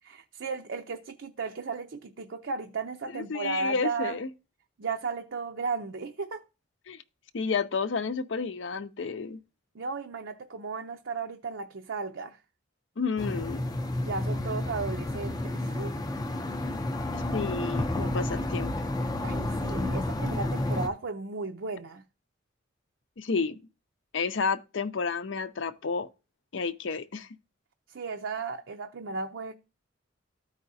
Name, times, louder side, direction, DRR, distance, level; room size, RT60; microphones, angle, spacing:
voice 1, 0.1-4.2 4.8-6.4 9.7-12.4 14.0-15.9 19.2-22.0 27.9-29.5, right 4 dB, 65° right, 0.5 m, -35 dB
voice 2, 3.1-4.3 6.9-7.0 7.3-9.4 13.0-13.6 17.1-18.7 23.2-23.6 24.1-26.1 26.5-27.3, left 4 dB, 65° left, 0.6 m, -31 dB
sound 1, 13.2-20.9, left 1 dB, 20° left, 0.5 m, -30 dB
13.5 x 4.8 x 2.7 m
head